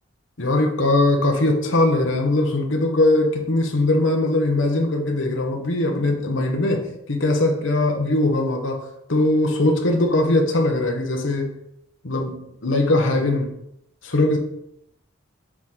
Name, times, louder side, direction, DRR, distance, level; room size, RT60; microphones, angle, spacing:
voice 1, 0.4-11.5 12.0-13.5 14.0-14.4, left 2 dB, 65° left, 3 dB, 1.1 m, -21 dB
7.1 x 3.7 x 4.1 m, 0.78 s
head